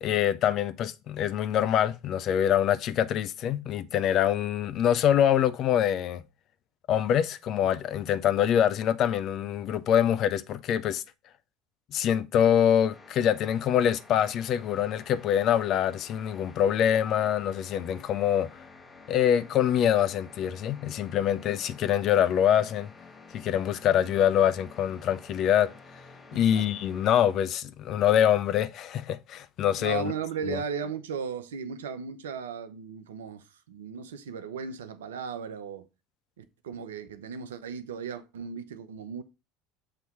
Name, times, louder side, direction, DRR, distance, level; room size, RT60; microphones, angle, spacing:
voice 1, 0.0-6.2 6.9-11.0 11.9-18.5 19.1-22.9 23.3-25.7 26.3-30.1 30.5-30.6, left 10 dB, 50° left, 0.5 m, -25 dB
sound 1, 12.9-27.4, left 3 dB, 25° left, 1.3 m, -51 dB
voice 2, 26.3-26.7 29.8-35.9 36.4-39.2, right 6 dB, 75° right, 0.7 m, -36 dB
6.7 x 3.0 x 5.5 m
figure-of-eight pair, 70°, 0 cm